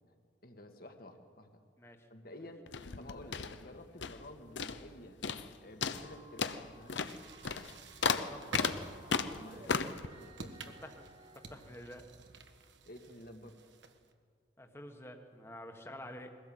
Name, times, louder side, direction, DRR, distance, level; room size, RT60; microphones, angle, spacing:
voice 1, 0.4-1.6 2.1-2.6 3.0-5.2 5.6-7.0 9.3-9.9 10.2-10.8 12.9-13.6, left 1 dB, 55° left, 5 dB, 1.9 m, -51 dB
voice 2, 1.8-2.1 8.0-8.7 10.8-11.1 11.3-12.0 14.6-16.3, left 1 dB, 15° left, 5 dB, 1.5 m, -49 dB
sound 1, 2.7-4.3 4.6-4.9 5.2-5.5 5.8-10.1, left 5 dB, 85° left, 0.8 m, -35 dB
sound 2, 5.9-11.9, right 1 dB, 35° right, 2.0 m, -58 dB
sound 3, 6.8-14.1, right 3 dB, 90° right, 1.3 m, -50 dB
21.5 x 16.5 x 7.8 m, 2.1 s
head